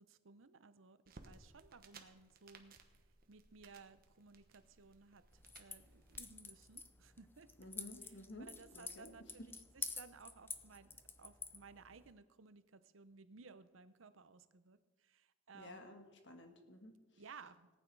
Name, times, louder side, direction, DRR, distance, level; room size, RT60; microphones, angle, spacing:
voice 1, 0.0-2.8 3.3-7.5 8.0-8.1 8.4-15.9 17.2-17.7, right 4 dB, 75° right, 13 dB, 0.7 m, -59 dB
sound 1, 1.0-6.2, right 3 dB, 45° right, 1.1 m, -62 dB
sound 2, 5.3-12.1, left 4 dB, 10° left, 0.4 m, -50 dB
voice 2, 7.6-8.5 8.7-9.1 9.4-9.5 15.5-17.2, left 1 dB, 60° left, 5 dB, 1.5 m, -53 dB
18.5 x 9.1 x 4.7 m, 1.2 s
head